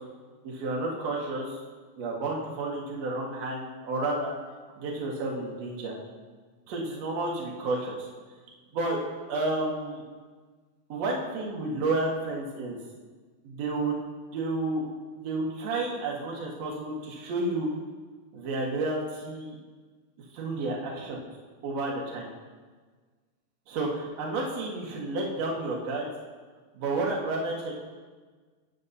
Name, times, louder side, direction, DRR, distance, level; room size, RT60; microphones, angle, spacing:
voice 1, 0.4-1.6 2.0-4.3 4.8-6.0 6.7-8.1 8.7-9.0 9.3-10.0 10.9-12.8 13.4-13.9 14.3-14.9 15.1-17.7 18.3-19.6 20.3-21.2 21.6-22.3 23.7-26.1 26.7-27.7, right 2 dB, 60° right, -3 dB, 2.6 m, -31 dB
18.5 x 8.6 x 2.7 m, 1.4 s
omnidirectional pair, 3.6 m